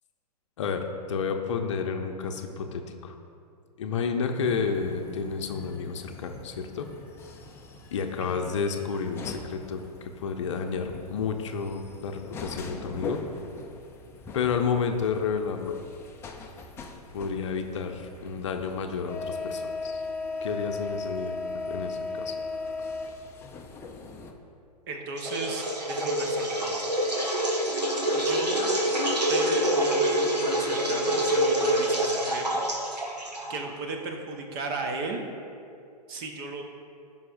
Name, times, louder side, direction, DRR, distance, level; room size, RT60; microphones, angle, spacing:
voice 1, 0.6-3.2 3.8-6.9 7.9-13.2 14.3-15.8 17.1-20.0 20.4-21.4 21.7-22.4, left 5 dB, 45° left, 5 dB, 0.7 m, -31 dB
sound 1, 4.4-24.3, left 3 dB, 10° left, 0.5 m, -39 dB
voice 2, 8.2-8.5 24.9-26.8 28.1-28.7 29.3-32.6 33.5-35.3 36.1-36.6, right 3 dB, 35° right, 3 dB, 1.0 m, -35 dB
sound 2, 25.2-33.7, right 1 dB, 80° right, 1.5 m, -26 dB
15.5 x 5.6 x 2.6 m, 2.5 s
figure-of-eight pair, 110°, 21 cm